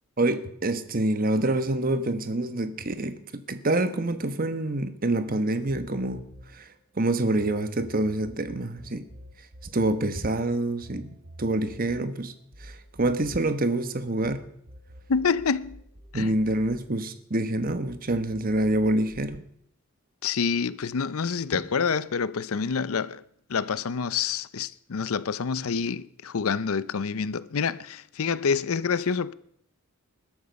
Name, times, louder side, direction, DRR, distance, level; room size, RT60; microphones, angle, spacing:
voice 1, 0.2-6.2 6.5-6.7 7.0-9.0 9.7-11.1 11.4-12.3 12.6-14.4 16.1-19.4 21.5-21.6, right 1 dB, 40° right, 1.2 m, -26 dB
sound 1, 5.7-7.5 7.8-14.4 14.7-17.3 17.7-19.3, equal, 70° right, 6.7 m, -48 dB
voice 2, 15.1-15.8 16.1-16.3 20.2-23.2 23.5-29.3, left 5 dB, 70° left, 0.6 m, -27 dB
20.5 x 12.5 x 5.3 m
head